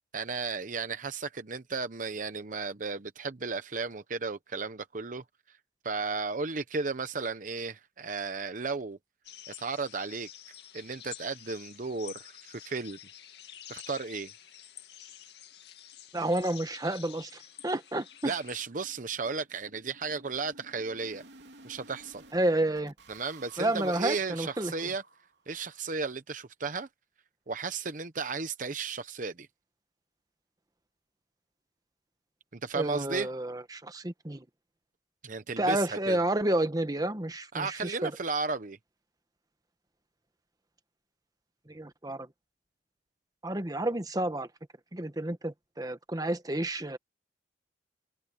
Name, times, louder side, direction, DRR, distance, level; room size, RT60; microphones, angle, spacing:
voice 1, 0.1-5.2 5.8-9.0 9.5-10.3 10.7-13.0 13.7-14.3 18.2-21.2 21.6-22.2 23.1-25.0 25.5-26.9 27.5-29.5 32.5-33.3 35.2-36.2 37.5-38.8, right 4 dB, 45° right, 0.9 m, -34 dB
sound 1, 9.2-18.7, left 11 dB, 65° left, 2.3 m, -49 dB
sound 2, 15.5-15.6 15.9-16.0 16.3-16.4 16.8-16.9 17.2-22.4 22.8-25.5, right 3 dB, 75° right, 3.4 m, -55 dB
voice 2, 16.1-18.3 22.3-22.9 23.6-24.9 32.7-34.4 35.6-38.1 41.7-42.3 43.4-44.5 44.9-47.0, right 1 dB, 20° right, 1.2 m, -30 dB
head